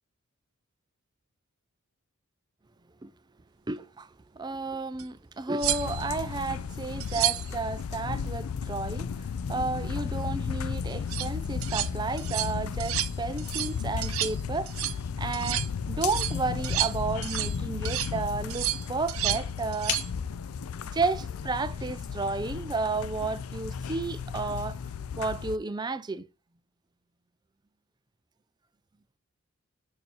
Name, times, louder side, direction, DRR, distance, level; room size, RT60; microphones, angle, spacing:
voice 1, 3.7-9.2 9.5-14.7 15.2-20.0 20.9-24.8 25.2-26.2, right 3 dB, 20° right, 0.4 m, -32 dB
sound 1, 5.0-5.1 5.6-6.2 7.0-7.5 10.9-11.3 11.6-11.9 12.2-12.5 12.8-13.1 13.4-13.8 14.0-14.4 14.7-15.0 15.3-15.7 16.0-17.6 17.9-18.1 18.5-19.5 19.7-20.1 22.7-22.9, right 14 dB, 85° right, 0.7 m, -31 dB
sound 2, 5.6-25.6, left 6 dB, 80° left, 0.4 m, -34 dB
6.6 x 5.5 x 2.9 m
head